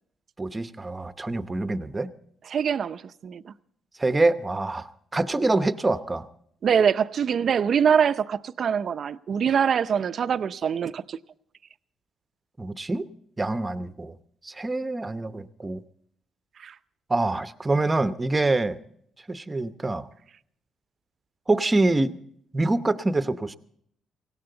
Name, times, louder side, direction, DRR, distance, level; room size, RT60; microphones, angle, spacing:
voice 1, 0.4-2.1 4.0-6.3 12.6-13.0 13.4-14.1 14.4-15.8 17.1-18.8 19.3-20.1 21.5-22.1 22.5-23.6, right 2 dB, 20° right, 0.9 m, -25 dB
voice 2, 2.5-3.5 6.6-11.2 16.6-16.7, right 7 dB, 55° right, 0.6 m, -24 dB
18.0 x 17.0 x 3.9 m
cardioid pair, 90°, 0 cm